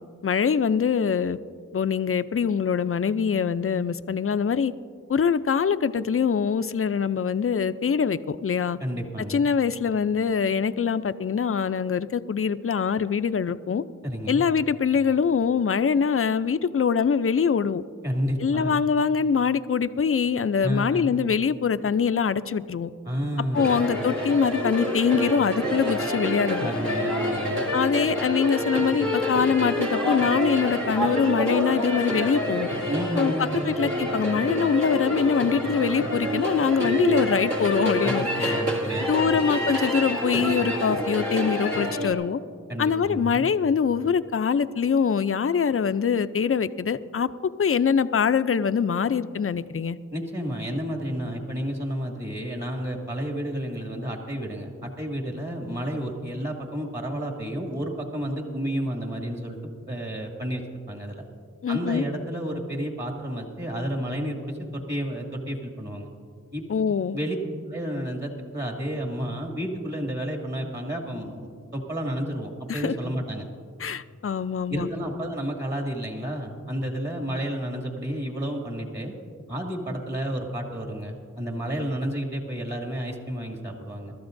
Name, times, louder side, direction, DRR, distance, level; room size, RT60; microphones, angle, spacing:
voice 1, 0.2-1.4 1.7-4.7 5.1-8.8 9.3-13.8 14.3-17.8 18.4-22.9 23.5-26.7 27.7-32.7 33.2-38.6 39.1-42.4 42.8-47.3 47.6-50.0 61.6-62.0 66.7-67.2 72.7-72.9 73.8-74.9, left 6 dB, 45° left, 13 dB, 0.5 m, -24 dB
voice 2, 8.8-9.5 14.0-14.4 18.0-18.7 20.6-21.2 23.0-23.7 26.6-27.6 32.9-33.7 38.0-39.5 42.7-43.5 50.1-61.2 61.7-66.1 66.5-66.6 67.1-67.4 67.7-73.5 74.7-79.1 79.5-84.1, equal, 35° right, 0 dB, 2.2 m, -31 dB
sound 1, 23.5-42.1, equal, 60° right, 2.6 m, -27 dB
24.5 x 13.0 x 2.6 m, 2.2 s
cardioid pair, 45°, 32 cm